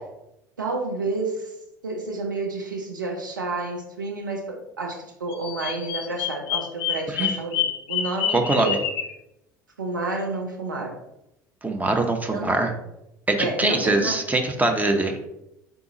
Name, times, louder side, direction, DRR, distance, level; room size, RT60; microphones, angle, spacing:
voice 1, 0.6-1.5 1.8-8.8 9.8-11.0 12.3-12.5 13.4-14.2, right 3 dB, 85° right, 1 dB, 0.6 m, -30 dB
Bird vocalization bird call bird song, 5.3-9.1, left 9 dB, 50° left, 0.5 m, -28 dB
voice 2, 8.3-8.8 11.6-12.7 13.3-15.3, right 2 dB, 15° right, 4 dB, 0.7 m, -23 dB
3.8 x 3.7 x 2.9 m, 0.85 s
figure-of-eight pair, 65°, 10 cm